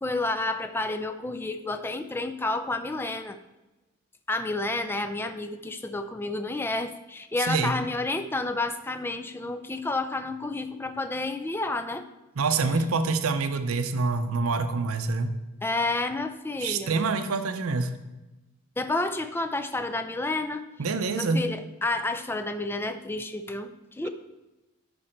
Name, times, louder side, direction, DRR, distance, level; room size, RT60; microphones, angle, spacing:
voice 1, 0.0-3.4 4.3-12.0 15.6-17.0 18.8-20.7 21.2-24.1, left 2 dB, 10° left, 8 dB, 0.3 m, -30 dB
voice 2, 12.4-15.3 16.6-17.9 20.8-21.4, right 4 dB, 80° right, 9 dB, 0.7 m, -26 dB
11.5 x 4.3 x 4.4 m, 1.1 s
head